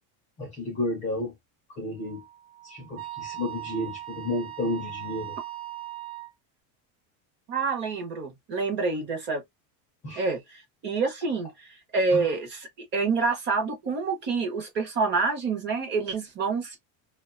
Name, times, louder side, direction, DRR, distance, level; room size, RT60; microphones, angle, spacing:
voice 1, 0.4-1.3 1.7-2.2 2.6-5.4 10.0-10.2 12.1-12.3, left 1 dB, 20° left, 0.3 m, -32 dB
Wind instrument woodwind instrument, 2.0-6.3, right 15 dB, 65° right, 0.9 m, -39 dB
voice 2, 7.5-9.4 10.2-16.8, right 4 dB, 25° right, 0.6 m, -27 dB
2.5 x 2.2 x 2.4 m
cardioid pair, 170°, 42 cm